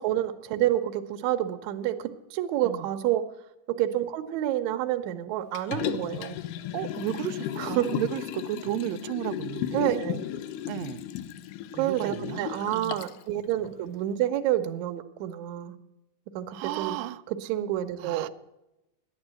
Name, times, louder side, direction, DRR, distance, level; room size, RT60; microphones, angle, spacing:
voice 1, 0.0-3.2 3.7-6.4 7.6-7.9 9.7-10.2 11.7-15.7 16.4-17.0 17.3-18.3, right 13 dB, 75° right, 1.9 m, -28 dB
Liquid, 5.5-13.2 13.6-13.7, left 11 dB, 80° left, 2.1 m, -34 dB
voice 2, 6.7-10.0 10.7-11.0 11.8-13.0 16.5-17.2 18.0-18.3, right 14 dB, 90° right, 2.3 m, -34 dB
10.5 x 8.9 x 7.5 m
omnidirectional pair, 3.9 m